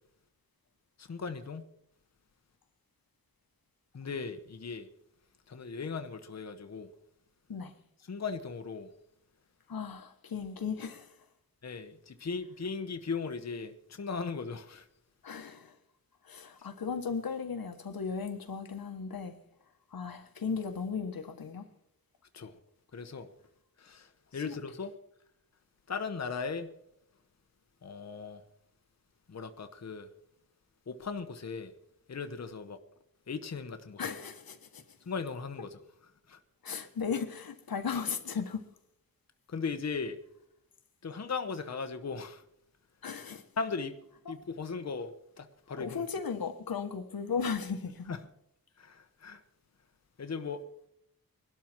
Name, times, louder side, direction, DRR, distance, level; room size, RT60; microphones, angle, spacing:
voice 1, 1.0-1.6 3.9-4.9 5.5-6.9 8.1-8.9 11.6-14.9 22.3-22.6 22.9-23.3 23.8-24.9 25.9-26.7 27.8-28.4 29.3-30.1 30.9-31.7 32.1-32.8 33.3-34.2 35.1-35.8 36.3-36.4 39.5-40.2 41.0-42.4 43.6-44.0 44.3-46.0 48.1-48.2 48.8-49.4 50.2-50.9, left 5 dB, 50° left, 1.1 m, -38 dB
voice 2, 9.7-11.1 15.2-15.8 16.2-19.3 19.9-21.7 24.4-24.5 34.0-34.8 36.6-38.6 43.0-43.4 44.3-44.4 45.8-48.1, left 6 dB, 90° left, 1.6 m, -36 dB
22.5 x 12.0 x 4.6 m
wide cardioid pair, 145°, 35 cm